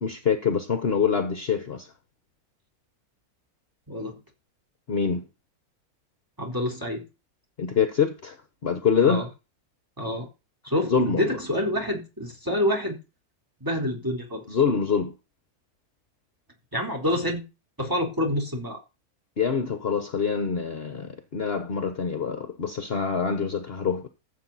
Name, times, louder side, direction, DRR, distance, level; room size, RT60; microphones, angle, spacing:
voice 1, 0.0-1.9 4.9-5.2 7.6-8.4 8.6-9.2 10.9-11.3 14.5-15.1 19.4-24.1, left 6 dB, 45° left, 1.2 m, -25 dB
voice 2, 3.9-4.2 6.4-7.0 9.0-9.3 10.0-10.3 10.6-13.0 13.6-14.6 16.7-17.4 17.8-18.8, left 1 dB, 15° right, 3.8 m, -27 dB
15.0 x 7.6 x 4.1 m
omnidirectional pair, 1.6 m